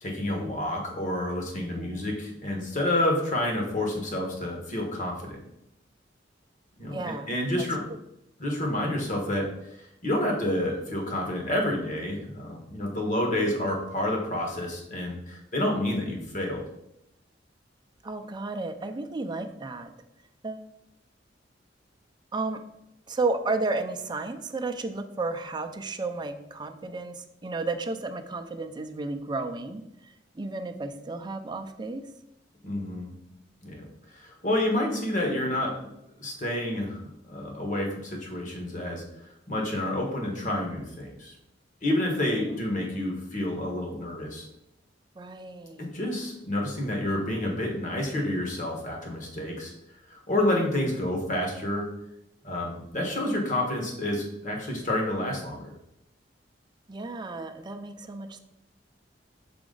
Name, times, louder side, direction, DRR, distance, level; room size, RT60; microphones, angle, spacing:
voice 1, 0.0-5.4 6.8-7.0 7.3-7.8 8.4-9.8 10.0-16.6 32.6-33.1 33.6-33.8 34.1-35.7 36.2-39.0 39.5-41.3 41.8-44.5 45.8-49.7 50.1-51.9 52.4-55.7, left 1 dB, 45° left, 1 dB, 1.4 m, -29 dB
voice 2, 1.6-2.2 6.9-7.3 18.0-19.9 20.4-20.7 22.3-22.6 23.1-32.0 45.2-45.9 56.9-58.4, right 3 dB, 25° right, 6 dB, 0.5 m, -33 dB
6.0 x 4.3 x 3.9 m, 0.82 s
head